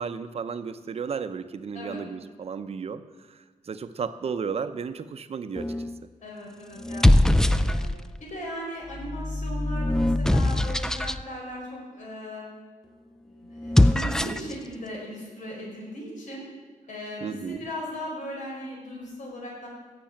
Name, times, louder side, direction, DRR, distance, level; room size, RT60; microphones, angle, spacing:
voice 1, 0.0-3.0 3.3-5.7 14.2-14.5 17.2-17.6, right 6 dB, 50° right, 11 dB, 0.7 m, -33 dB
sound 1, 5.6-6.0 6.8-8.2 8.9-11.2 13.6-14.5, left 1 dB, 5° left, 0.4 m, -22 dB
voice 2, 6.2-7.8 8.2-12.4 13.2-16.5 16.9-19.7, equal, 65° left, -3 dB, 4.6 m, -38 dB
16.0 x 6.8 x 8.8 m, 1.4 s
wide cardioid pair, 145°, 14 cm